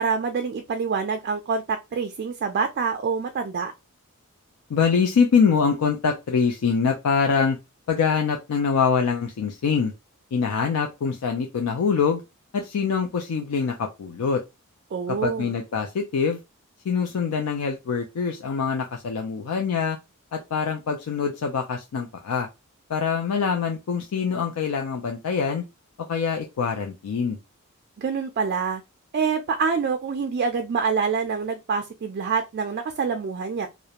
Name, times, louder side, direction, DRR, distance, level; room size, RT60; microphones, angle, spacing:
voice 1, 0.0-3.7 14.9-15.6 28.0-28.8 29.1-33.7, right 5 dB, 45° right, 0.3 m, -26 dB
voice 2, 4.7-7.6 7.9-9.9 10.3-12.2 12.5-14.4 15.1-16.4 16.9-20.0 20.3-22.5 22.9-25.6 26.1-27.4, left 6 dB, 80° left, 0.4 m, -24 dB
2.4 x 2.1 x 2.8 m
head